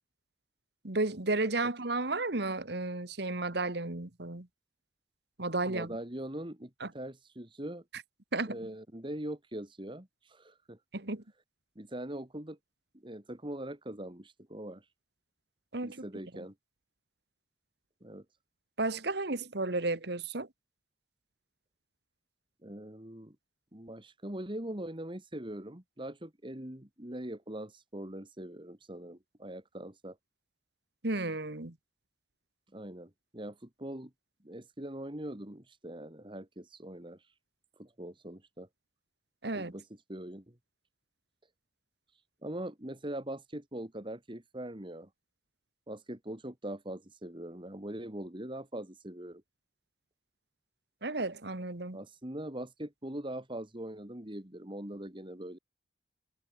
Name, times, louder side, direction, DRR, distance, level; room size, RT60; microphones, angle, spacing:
voice 1, 0.8-4.5 5.4-5.9 6.8-6.9 8.3-8.6 10.9-11.2 15.7-16.0 18.8-20.5 31.0-31.7 39.4-39.7 51.0-52.0, right 2 dB, 65° right, 1.8 m, -33 dB
voice 2, 5.6-7.8 8.5-10.8 11.8-12.6 13.0-14.9 15.8-16.5 18.0-18.2 22.6-23.4 23.7-30.2 32.7-34.1 34.4-37.3 37.8-38.7 39.5-40.6 42.1-45.1 45.9-49.4 51.9-55.6, right 1 dB, 25° right, 2.4 m, -42 dB
head